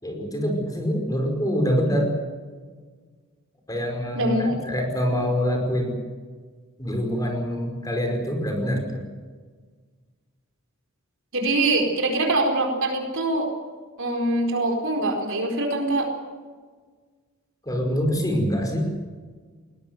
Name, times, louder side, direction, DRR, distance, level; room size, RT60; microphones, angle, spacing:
voice 1, 0.0-2.1 3.7-6.0 6.8-9.0 17.6-18.9, equal, 15° left, 3 dB, 5.1 m, -25 dB
voice 2, 4.1-4.6 11.3-13.5 14.0-16.1, right 2 dB, 65° right, 3 dB, 4.5 m, -23 dB
21.5 x 19.0 x 7.9 m, 1.5 s
head